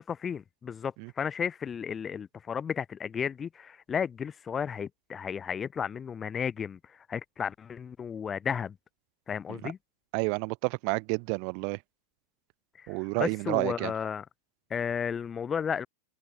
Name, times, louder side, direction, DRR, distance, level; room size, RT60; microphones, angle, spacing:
voice 1, 0.1-8.8 9.3-9.8 12.8-14.3 14.7-15.9, left 7 dB, 20° left, 0.6 m, -33 dB
voice 2, 10.1-11.8 12.9-13.9, right 40 dB or more, 45° right, 0.6 m, -30 dB
figure-of-eight pair, 90°, 0 cm